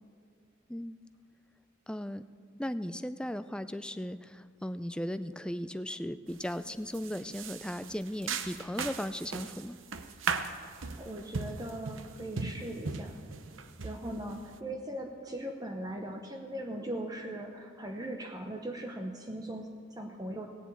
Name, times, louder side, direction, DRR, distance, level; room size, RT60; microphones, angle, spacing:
voice 1, 1.9-2.2 2.6-9.8, equal, 5° left, 12 dB, 0.4 m, -37 dB
sound 1, 6.3-6.6 6.9-14.6, right 5 dB, 90° right, 0.8 m, -38 dB
voice 2, 11.0-13.2 13.8-20.5, right 1 dB, 20° right, 3 dB, 0.8 m, -39 dB
17.5 x 7.2 x 8.3 m, 2.2 s
head